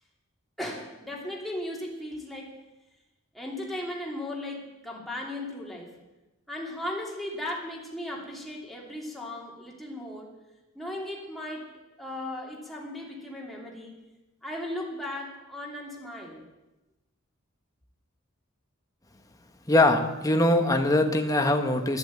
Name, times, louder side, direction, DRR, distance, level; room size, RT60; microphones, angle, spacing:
voice 1, 0.6-2.5 3.3-6.0 6.5-10.3 10.7-11.7 12.0-13.9 14.4-16.5, left 1 dB, ahead, -2 dB, 2.9 m, -36 dB
voice 2, 19.7-22.0, left 1 dB, 15° left, 5 dB, 1.3 m, -22 dB
11.5 x 11.0 x 8.5 m, 1.0 s
head